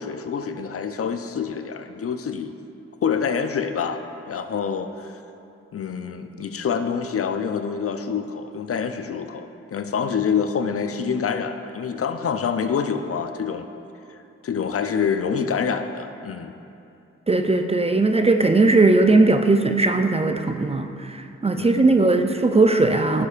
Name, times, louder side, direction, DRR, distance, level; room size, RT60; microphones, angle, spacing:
voice 1, 0.0-2.5 3.0-5.2 5.7-13.7 14.4-16.5 21.6-22.1, left 6 dB, 50° left, 8 dB, 0.5 m, -26 dB
voice 2, 17.3-23.3, right 3 dB, 20° right, 6 dB, 0.4 m, -18 dB
11.0 x 6.8 x 2.4 m, 2.7 s
cardioid pair, 50°, 30 cm